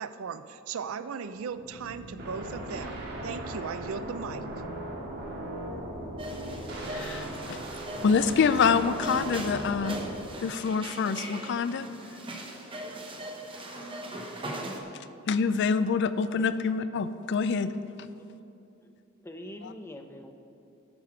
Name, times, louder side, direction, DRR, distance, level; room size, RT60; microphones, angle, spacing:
voice 1, 0.0-4.4, right 6 dB, 75° right, 13 dB, 0.4 m, -37 dB
sound 1, 1.2-7.2, left 1 dB, 85° left, 1.6 m, -52 dB
sound 2, 2.2-10.2, right 1 dB, 50° right, 1.8 m, -37 dB
sound 3, 6.2-14.8, right 1 dB, 25° right, 0.9 m, -40 dB
voice 2, 6.9-7.6 8.0-10.0 10.4-11.9 15.3-17.7, left 5 dB, 55° left, 13 dB, 0.4 m, -26 dB
voice 3, 17.9-18.3 18.8-18.9 19.2-20.3, left 1 dB, 10° left, 5 dB, 0.6 m, -44 dB
10.5 x 6.6 x 5.9 m, 2.7 s
head